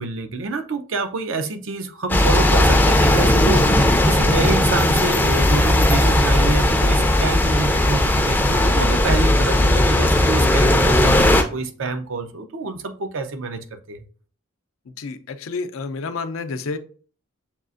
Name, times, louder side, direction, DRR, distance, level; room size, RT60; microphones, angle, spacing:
voice 1, 0.0-14.0, right 3 dB, 65° right, 0.6 m, -27 dB
sound 1, 2.1-11.4, left 1 dB, 10° left, 0.4 m, -17 dB
voice 2, 14.9-16.8, left 4 dB, 80° left, 0.5 m, -30 dB
6.9 x 2.4 x 2.5 m
head